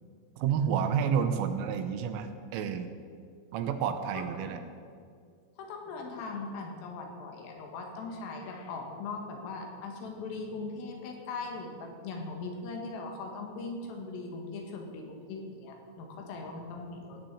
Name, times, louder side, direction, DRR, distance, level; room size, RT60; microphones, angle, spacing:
voice 1, 0.4-2.9 3.5-4.6, right 7 dB, 85° right, 9 dB, 3.4 m, -30 dB
voice 2, 4.1-4.5 5.6-17.2, left 3 dB, 85° left, 2 dB, 4.4 m, -40 dB
16.0 x 7.2 x 8.7 m, 2.2 s
omnidirectional pair, 5.8 m